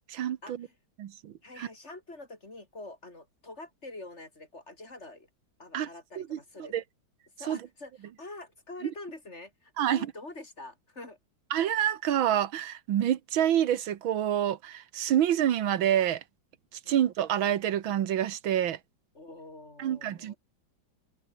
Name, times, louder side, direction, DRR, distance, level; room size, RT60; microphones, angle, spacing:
voice 1, 0.1-0.7 1.0-1.7 5.7-5.9 6.2-6.8 7.5-7.6 8.8-8.9 9.8-10.1 11.5-16.2 16.7-18.8 19.8-20.3, right 10 dB, 80° right, 1.9 m, -27 dB
voice 2, 1.4-5.3 5.6-6.8 7.4-7.9 8.2-11.2 16.8-17.0 19.1-20.4, left 2 dB, 35° left, 4.4 m, -45 dB
omnidirectional pair, 2.2 m